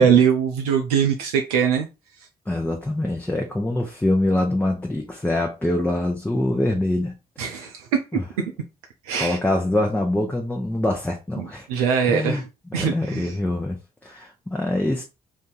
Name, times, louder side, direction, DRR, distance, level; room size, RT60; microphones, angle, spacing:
voice 1, 0.0-1.9 7.4-8.0 9.0-9.4 11.4-12.4 12.7-13.4, right 7 dB, 80° right, 0.4 m, -21 dB
voice 2, 2.5-7.1 7.5-7.7 8.1-8.2 9.2-11.7 12.1-15.0, left 1 dB, 10° left, 0.7 m, -24 dB
2.6 x 2.6 x 3.8 m
figure-of-eight pair, 40°, 19 cm